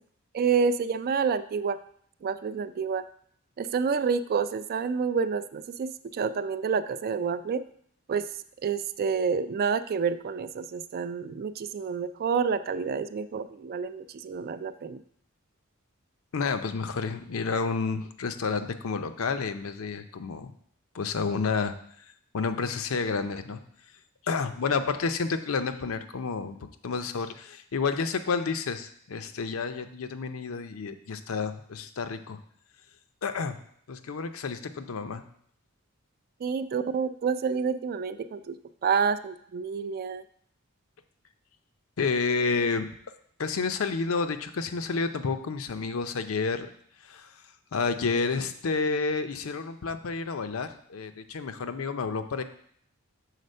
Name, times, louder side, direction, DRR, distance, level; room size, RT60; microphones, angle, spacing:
voice 1, 0.3-1.8 2.2-3.0 3.6-7.6 8.1-8.2 8.6-15.0 36.4-38.6 38.8-40.2, right 6 dB, 45° right, 13 dB, 0.3 m, -28 dB
voice 2, 16.3-20.5 20.9-21.7 22.3-23.6 24.2-32.4 33.2-33.6 33.9-35.2 42.0-43.1 43.4-46.7 47.0-47.4 47.7-52.4, left 4 dB, 75° left, 9 dB, 0.5 m, -30 dB
6.6 x 4.1 x 5.4 m, 0.64 s
head